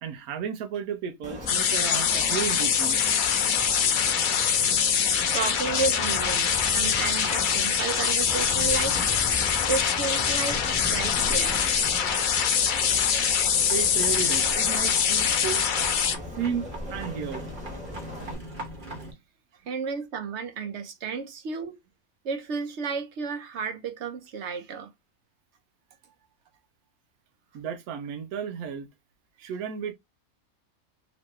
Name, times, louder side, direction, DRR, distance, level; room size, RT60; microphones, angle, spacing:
voice 1, 0.0-3.4 13.7-15.7 16.4-16.6 16.9-17.5 27.5-28.9 29.4-29.9, right 7 dB, 85° right, 1.2 m, -33 dB
sound 1, 1.2-18.3, left 1 dB, 5° right, 1.2 m, -38 dB
sound 2, 1.5-16.2, left 7 dB, 85° left, 0.4 m, -24 dB
voice 2, 5.3-9.0 9.7-11.6 19.7-21.8 22.2-24.9, right 5 dB, 60° right, 1.0 m, -32 dB
sound 3, 11.8-19.1, right 1 dB, 35° right, 1.2 m, -42 dB
3.1 x 3.0 x 3.1 m
omnidirectional pair, 1.5 m